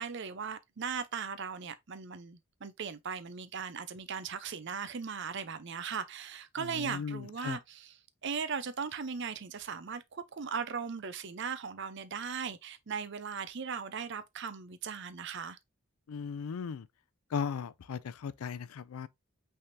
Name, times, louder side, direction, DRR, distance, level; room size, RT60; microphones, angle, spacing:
voice 1, 0.0-7.9 8.2-15.6, right 6 dB, 55° right, 0.6 m, -38 dB
voice 2, 6.6-7.6 16.1-16.9 17.3-19.1, left 6 dB, 85° left, 0.4 m, -37 dB
5.7 x 3.5 x 2.6 m
head